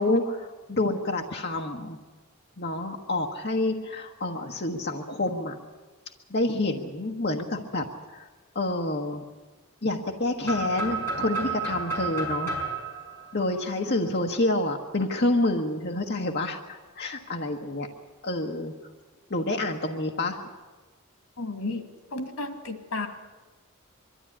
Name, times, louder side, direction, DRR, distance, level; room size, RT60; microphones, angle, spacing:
voice 1, 0.0-2.0 2.6-5.6 6.3-7.8 8.1-8.3 8.5-9.2 9.8-12.5 13.3-17.9 18.2-18.7 19.3-20.4, left 2 dB, 50° left, 2 dB, 1.3 m, -28 dB
sound 1, 10.4-14.3, right 3 dB, 10° left, 6.1 m, -32 dB
voice 2, 21.4-21.8 22.1-23.1, left 2 dB, 90° left, 7 dB, 2.3 m, -32 dB
22.5 x 13.0 x 9.9 m, 1.3 s
head